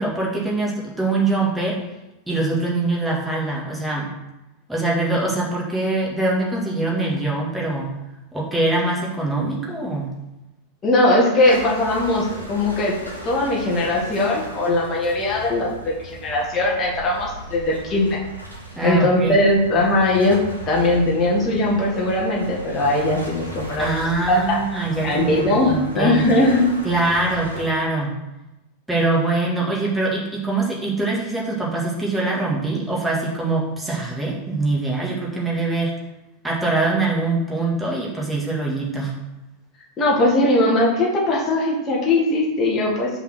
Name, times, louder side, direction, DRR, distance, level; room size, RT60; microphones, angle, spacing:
voice 1, 0.0-1.8 2.3-4.1 4.7-7.9 8.3-10.1 18.8-19.3 23.8-26.2 26.8-28.1 28.9-35.9 36.4-39.1, right 2 dB, 5° right, -4 dB, 1.8 m, -23 dB
voice 2, 10.8-13.0 13.2-18.2 18.8-20.4 20.7-24.0 24.3-24.6 25.0-26.7 40.0-43.1, left 1 dB, 25° left, -3 dB, 1.7 m, -19 dB
sound 1, 11.4-27.6, equal, 90° right, 1.6 m, -37 dB
5.5 x 4.2 x 6.2 m, 0.97 s
figure-of-eight pair, 90°, 0 cm